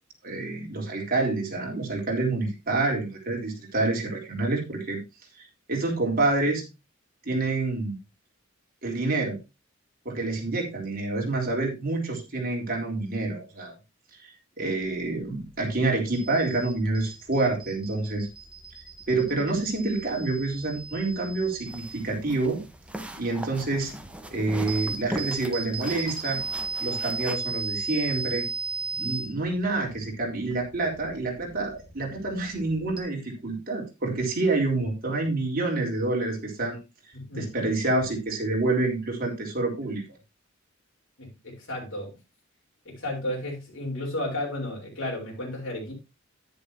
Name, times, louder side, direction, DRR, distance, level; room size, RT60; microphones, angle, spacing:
voice 1, 0.2-5.0 5.4-6.6 7.3-8.0 8.8-9.4 10.0-13.7 14.6-18.3 19.1-22.6 23.2-23.9 24.3-26.4 26.8-28.5 28.9-36.8 37.3-40.0, right 2 dB, 45° right, 0 dB, 4.1 m, -27 dB
sound 1, 14.8-33.0, right 4 dB, 25° right, 2.3 m, -38 dB
sound 2, 21.7-27.4, right 1 dB, 5° right, 1.2 m, -39 dB
voice 2, 37.1-37.5 41.2-42.2 42.8-45.9, left 1 dB, 65° left, -3 dB, 5.0 m, -33 dB
10.5 x 10.5 x 2.9 m, 0.25 s
head